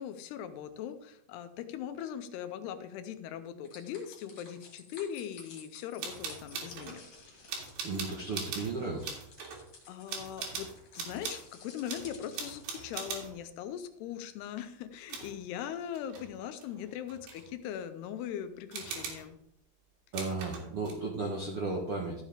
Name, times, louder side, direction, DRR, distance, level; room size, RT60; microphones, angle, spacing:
voice 1, 0.0-7.0 9.9-19.4, left 9 dB, 85° left, 10 dB, 2.7 m, -40 dB
sound 1, 3.6-12.9, left 4 dB, 45° left, 2.5 m, -55 dB
sound 2, 6.0-7.0 7.5-8.8 9.0-9.6 10.1-11.5 11.9-13.4 15.1-15.4 15.9-16.3 16.6-17.5 18.7-19.3 20.1-20.9, right 5 dB, 90° right, 4.2 m, -40 dB
voice 2, 7.8-9.2 20.1-22.2, right 3 dB, 70° right, -1 dB, 1.3 m, -34 dB
13.0 x 7.3 x 3.6 m, 0.78 s
omnidirectional pair, 4.8 m